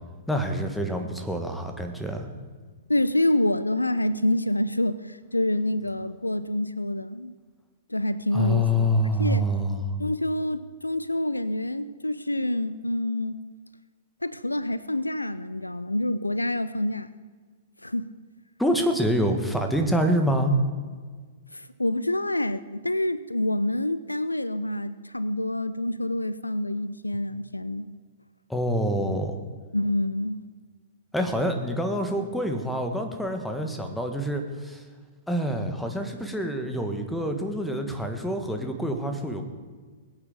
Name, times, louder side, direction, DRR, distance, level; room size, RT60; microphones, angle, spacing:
voice 1, 0.3-2.3 8.3-9.8 18.6-20.5 28.5-29.4 31.1-34.8 35.3-39.4, equal, 5° left, 5 dB, 1.6 m, -26 dB
voice 2, 2.9-7.3 7.9-8.9 9.2-9.5 10.0-13.4 14.2-17.1 17.8-18.1 21.5-27.9 29.7-30.4, left 1 dB, 85° left, 16 dB, 0.5 m, -27 dB
21.0 x 8.9 x 5.2 m, 1.5 s
figure-of-eight pair, 110°, 0 cm